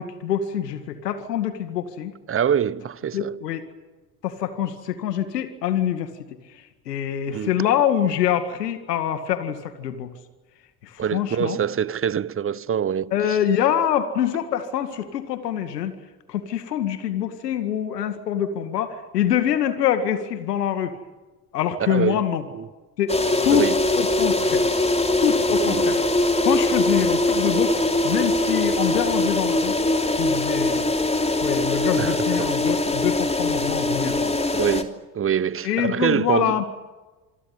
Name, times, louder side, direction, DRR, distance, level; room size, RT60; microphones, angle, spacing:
voice 1, 0.0-2.1 3.1-3.7 4.2-6.1 6.5-10.1 10.8-11.6 13.1-16.0 16.3-20.9 21.5-22.4 23.0-23.1 23.4-23.7 24.0-24.7 25.2-26.0 26.4-27.8 28.0-29.8 30.1-30.8 31.3-34.3 35.6-36.7, left 10 dB, 80° left, 2.2 m, -25 dB
voice 2, 2.3-3.3 7.3-7.5 11.0-13.4 21.8-22.2 22.5-22.6 23.5-23.8 25.6-25.9 31.9-32.5 34.5-36.5, right 8 dB, 25° right, 1.0 m, -25 dB
sound 1, 23.1-34.8, left 2 dB, 15° left, 3.2 m, -22 dB
27.0 x 21.0 x 9.6 m
figure-of-eight pair, 60°, 48 cm